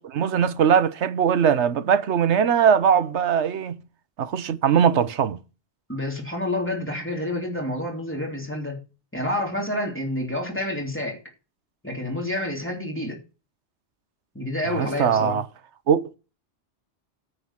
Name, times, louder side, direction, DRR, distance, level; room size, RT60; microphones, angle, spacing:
voice 1, 0.0-3.8 4.2-5.4 14.7-15.4 15.9-16.2, right 8 dB, 90° right, 1.2 m, -21 dB
voice 2, 5.9-8.8 9.1-11.2 11.8-13.2 14.3-15.4, left 1 dB, 10° left, 3.1 m, -28 dB
9.7 x 8.0 x 5.7 m
omnidirectional pair, 1.1 m